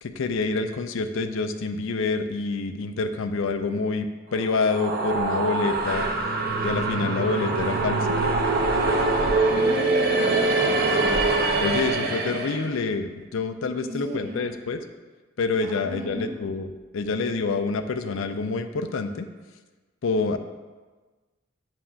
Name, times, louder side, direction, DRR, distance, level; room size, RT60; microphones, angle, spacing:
voice 1, 0.0-6.1 6.6-8.1 11.6-14.8 15.4-19.3 20.0-20.4, left 4 dB, 80° left, 9 dB, 0.5 m, -27 dB
sound 1, 4.4-12.7, right 3 dB, 50° right, 0.6 m, -24 dB
voice 2, 9.4-11.2 13.8-14.5 15.6-16.3, right 1 dB, 75° right, -5 dB, 1.7 m, -35 dB
7.5 x 2.5 x 5.7 m, 1.3 s
head